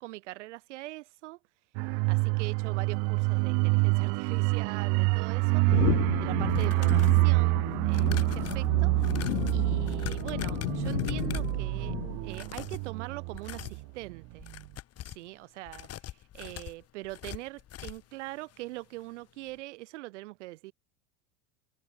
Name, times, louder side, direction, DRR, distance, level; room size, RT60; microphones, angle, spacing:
voice 1, 0.0-1.4 2.1-9.3 9.5-12.0 12.2-14.4 15.1-20.7, right 19 dB, 75° right, 6.6 m, -42 dB
sound 1, 1.7-14.1 14.4-14.6, right 36 dB, 60° right, 0.7 m, -27 dB
sound 2, 5.7-12.4, left 24 dB, 70° left, 4.1 m, -34 dB
sound 3, 6.4-7.3 7.9-11.6 12.2-12.9 13.3-13.8 14.3-15.3 15.7-18.1 18.5-18.6 19.0-19.1, left 12 dB, 45° left, 3.4 m, -42 dB
hypercardioid pair, 95°, 35 cm